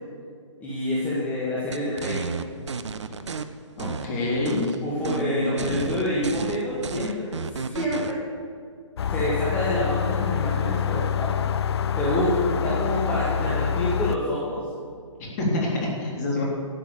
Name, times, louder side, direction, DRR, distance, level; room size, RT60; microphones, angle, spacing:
voice 1, 0.6-2.2 4.8-8.2 9.1-11.3 11.9-14.6 16.3-16.4, left 1 dB, 10° left, -8 dB, 2.2 m, -27 dB
sound 1, 1.7-3.4 3.8-4.8 5.0-5.2 5.6-8.1, right 5 dB, 65° right, 0.8 m, -32 dB
voice 2, 3.8-5.6 15.2-16.4, left 2 dB, 30° left, -3 dB, 3.5 m, -27 dB
sound 2, 9.0-14.2, left 8 dB, 55° left, 0.4 m, -26 dB
12.5 x 8.2 x 7.2 m, 2.2 s
figure-of-eight pair, 135°, 16 cm